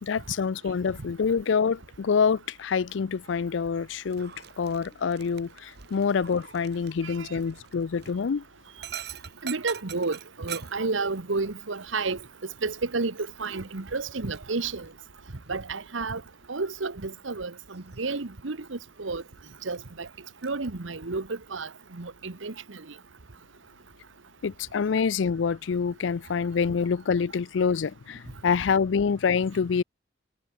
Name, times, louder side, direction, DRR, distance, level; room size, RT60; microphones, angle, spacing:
voice 1, 0.0-8.4 24.4-29.8, left 6 dB, 70° left, 0.4 m, -26 dB
Dog, 4.0-20.7, right 9 dB, 55° right, 1.6 m, -47 dB
voice 2, 9.4-12.2 12.6-13.1 13.4-14.9 15.5-16.2 16.5-19.2 19.6-20.1 20.4-22.8, right 3 dB, 80° right, 1.2 m, -31 dB
head